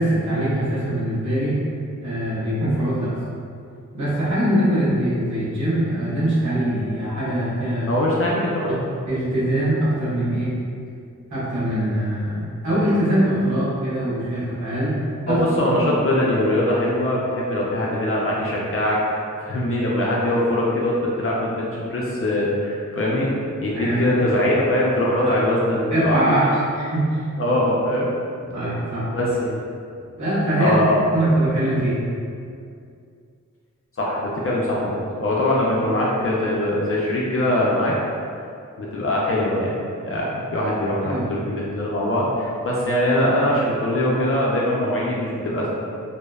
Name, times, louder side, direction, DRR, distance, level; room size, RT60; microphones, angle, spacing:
voice 1, 0.0-1.6 2.0-3.2 3.9-7.9 9.1-10.5 11.3-14.9 15.2-15.4 23.7-24.0 25.2-25.4 25.9-27.3 28.5-29.1 30.2-30.8 31.1-32.0 41.0-41.2, right 1 dB, 65° right, -10 dB, 1.2 m, -22 dB
voice 2, 7.9-8.8 15.3-19.0 19.4-23.3 23.6-26.2 27.4-28.1 29.1-29.6 30.6-31.0 34.0-37.9 38.8-39.8 40.0-45.7, left 1 dB, 45° left, -5 dB, 0.4 m, -22 dB
2.6 x 2.1 x 2.2 m, 2.4 s
cardioid pair, 60°, 32 cm